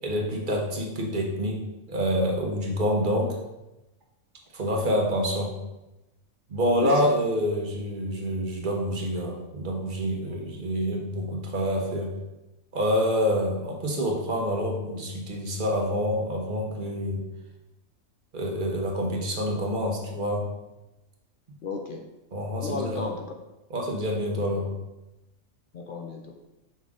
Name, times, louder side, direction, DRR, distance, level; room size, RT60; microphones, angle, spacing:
voice 1, 0.0-3.3 4.5-5.5 6.5-12.1 12.7-17.2 18.3-20.5 22.3-23.1 23.7-24.7, equal, 40° right, 0 dB, 1.2 m, -27 dB
voice 2, 6.8-7.2 21.6-22.0 22.6-23.3 24.5-24.7 25.7-26.4, left 4 dB, 60° left, 3 dB, 0.5 m, -34 dB
5.7 x 5.4 x 3.6 m, 0.99 s
omnidirectional pair, 1.4 m